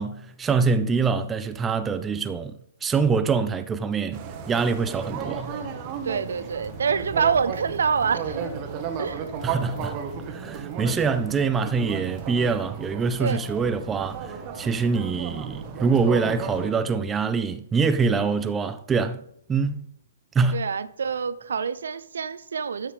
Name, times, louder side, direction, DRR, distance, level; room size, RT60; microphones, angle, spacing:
voice 1, 0.0-2.5 2.8-4.2 4.5-5.5 9.4-10.0 10.3-19.2 19.5-19.8 20.3-20.6, right 5 dB, 10° right, 0.4 m, -24 dB
sound 1, 4.1-16.7, right 6 dB, 25° right, 1.1 m, -34 dB
sound 2, 5.6-16.6, left 3 dB, 20° left, 1.7 m, -49 dB
voice 2, 6.0-8.5 9.0-9.4 13.2-13.4 20.5-22.9, right 6 dB, 60° right, 0.6 m, -26 dB
12.5 x 7.3 x 3.4 m
figure-of-eight pair, 125°, 0 cm